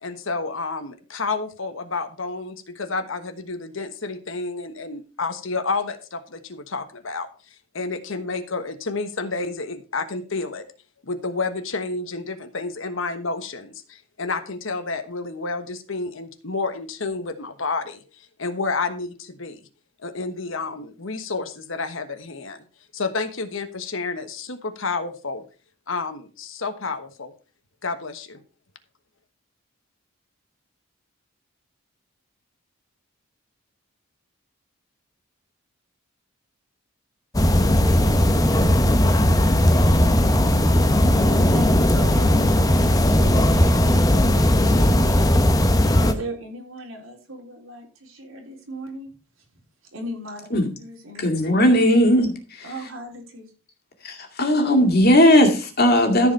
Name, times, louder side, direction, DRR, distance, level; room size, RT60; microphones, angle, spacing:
voice 1, 0.0-7.3 7.7-10.6 11.0-19.6 20.0-22.6 22.9-25.4 25.9-27.3 27.8-28.4, left 3 dB, 65° left, 1.2 m, -30 dB
sound 1, 37.3-46.1, left 1 dB, 15° left, 0.8 m, -17 dB
voice 2, 41.0-42.4 42.9-45.3 45.6-49.1 49.9-50.5 50.8-51.2 52.6-53.5, equal, 70° right, 3.9 m, -37 dB
voice 3, 51.2-52.3 52.6-52.7 54.0-56.3, equal, 50° left, 2.2 m, -17 dB
14.0 x 4.8 x 5.4 m
head